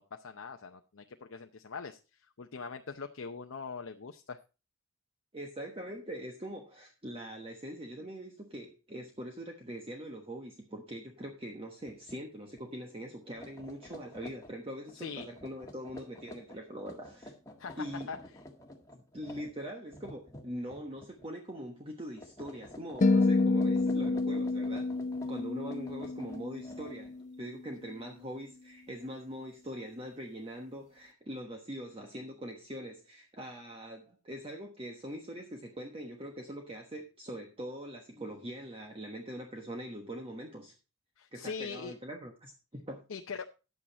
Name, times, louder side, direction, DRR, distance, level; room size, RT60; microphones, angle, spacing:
voice 1, 0.0-2.0 2.4-4.4 14.9-15.3 17.6-18.2 41.2-41.9 43.1-43.4, left 5 dB, 70° left, 5 dB, 0.7 m, -42 dB
voice 2, 5.3-17.3 17.8-18.1 18.9-24.9 25.3-40.7 41.3-43.0, equal, 25° right, 2 dB, 1.2 m, -42 dB
sound 1, 11.8-12.2 12.5-12.7 13.2-21.3 21.6-21.9 22.2-27.3, left 1 dB, 15° left, 1.6 m, -50 dB
sound 2, 23.0-27.3, left 3 dB, 35° left, 0.4 m, -29 dB
10.5 x 8.6 x 4.1 m, 0.32 s
head